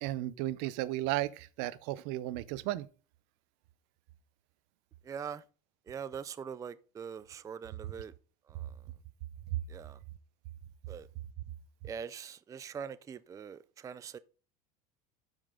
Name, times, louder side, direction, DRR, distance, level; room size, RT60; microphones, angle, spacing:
voice 1, 0.0-2.9, right 15 dB, 70° right, 0.7 m, -34 dB
voice 2, 5.0-5.4 5.9-8.1 8.5-8.8 9.7-10.0 10.9-11.1 11.8-14.2, right 7 dB, 20° right, 0.4 m, -43 dB
12.0 x 5.4 x 3.7 m
supercardioid pair, 120°, 18 cm